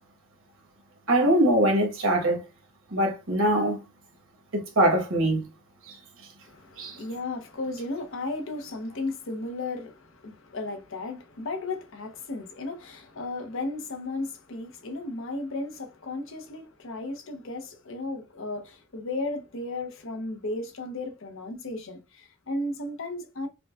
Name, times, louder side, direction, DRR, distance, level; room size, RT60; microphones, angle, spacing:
voice 1, 1.1-2.4 2.9-3.8 4.5-5.4 5.9-6.0 6.8-7.0, right 1 dB, 60° right, 1.1 m, -22 dB
voice 2, 6.4-23.5, left 2 dB, 60° left, 0.7 m, -35 dB
5.1 x 2.2 x 2.3 m
head